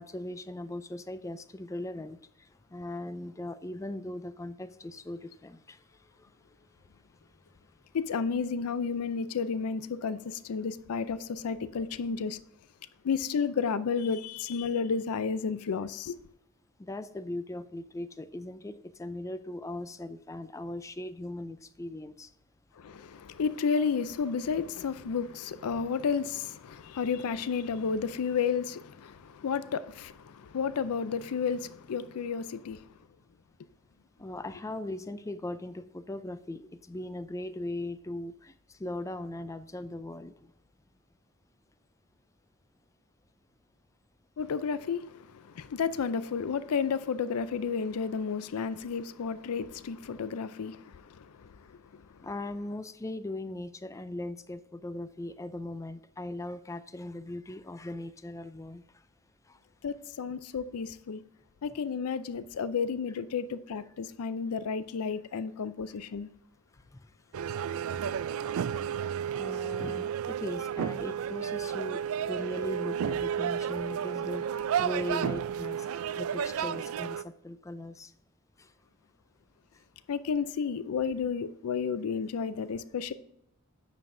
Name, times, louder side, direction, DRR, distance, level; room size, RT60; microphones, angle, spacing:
voice 1, 0.0-2.2 2.7-5.8 6.2-6.3 16.8-22.3 34.2-40.5 52.2-58.8 59.5-59.6 65.3-65.4 67.4-67.5 69.3-78.1 78.6-78.7, left 1 dB, 15° left, 0.3 m, -39 dB
voice 2, 7.9-12.4 13.0-16.2 22.8-32.9 44.4-52.1 59.8-61.2 61.6-66.3 80.1-83.1, left 6 dB, 85° left, 0.4 m, -32 dB
sound 1, 67.3-77.2, right 8 dB, 70° right, 0.3 m, -32 dB
9.2 x 6.7 x 2.6 m
head